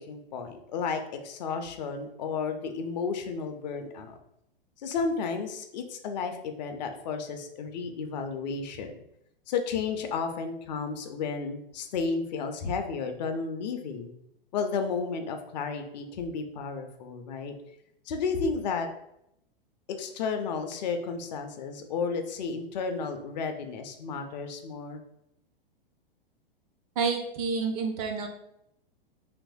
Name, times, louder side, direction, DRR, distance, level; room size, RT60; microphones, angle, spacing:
voice 1, 0.0-4.2 4.8-8.9 9.5-14.1 14.5-17.5 18.1-18.9 20.0-25.0, left 5 dB, 50° left, 6 dB, 0.4 m, -32 dB
voice 2, 27.0-28.3, right 5 dB, 40° right, 4 dB, 0.4 m, -29 dB
2.9 x 2.6 x 2.2 m, 0.78 s
figure-of-eight pair, 100°, 29 cm